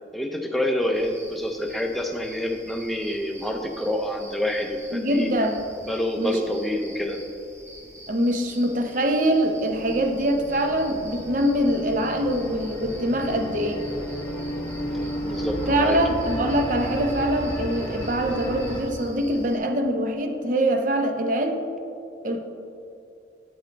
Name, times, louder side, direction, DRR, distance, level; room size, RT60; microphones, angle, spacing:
voice 1, 0.1-5.3 5.8-7.2 14.9-16.1, left 1 dB, ahead, 2 dB, 0.5 m, -27 dB
sound 1, 0.9-19.6, equal, 15° right, 1.2 m, -46 dB
voice 2, 4.9-5.7 6.2-6.4 8.1-13.9 15.7-21.6 22.2-22.4, right 1 dB, 45° right, 4 dB, 0.7 m, -24 dB
sound 2, 9.7-18.8, equal, 20° left, 1.5 m, -32 dB
8.6 x 7.9 x 3.3 m, 2.7 s
head